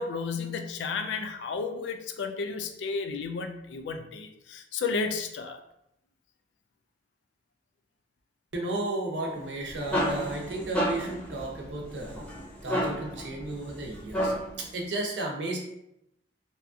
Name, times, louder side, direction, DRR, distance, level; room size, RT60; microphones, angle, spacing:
voice 1, 0.0-5.6, left 4 dB, 80° left, 7 dB, 0.3 m, -32 dB
voice 2, 8.5-12.3 12.6-14.3 14.6-15.6, right 2 dB, 80° right, 0 dB, 0.6 m, -33 dB
sound 1, 9.4-14.7, equal, 5° left, 0.5 m, -32 dB
2.7 x 2.4 x 2.3 m, 0.80 s
head